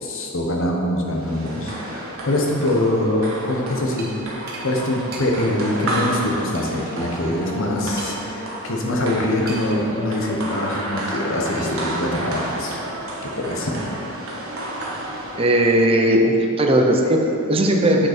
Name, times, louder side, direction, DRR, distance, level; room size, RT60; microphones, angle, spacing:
voice 1, 0.0-4.1 4.6-12.8 13.4-13.7, left 1 dB, 65° left, 0 dB, 1.2 m, -23 dB
sound 1, 1.1-15.9, right 1 dB, 75° right, 1.3 m, -31 dB
sound 2, 4.0-4.1 4.5-4.7 5.1-5.3 5.9-6.0 6.5-6.7 8.0-8.4 9.5-9.8, right 3 dB, 50° right, 1.3 m, -36 dB
voice 2, 15.4-18.1, right 1 dB, 25° right, 1 dB, 0.7 m, -17 dB
7.7 x 6.6 x 4.4 m, 2.8 s
head